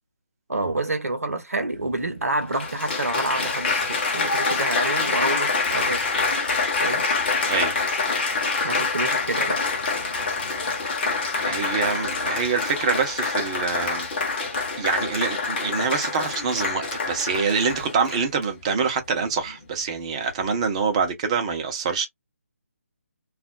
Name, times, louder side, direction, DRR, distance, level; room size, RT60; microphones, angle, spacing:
voice 1, 0.5-6.0 6.8-7.1 8.6-9.6, right 2 dB, 80° right, 0.8 m, -28 dB
Applause, 1.8-1.9 2.5-18.4 19.2-19.5, left 4 dB, 40° left, 0.9 m, -26 dB
voice 2, 11.5-14.1 14.8-22.1, right 5 dB, 25° right, 0.7 m, -25 dB
2.4 x 2.0 x 3.7 m
figure-of-eight pair, 150°, 8 cm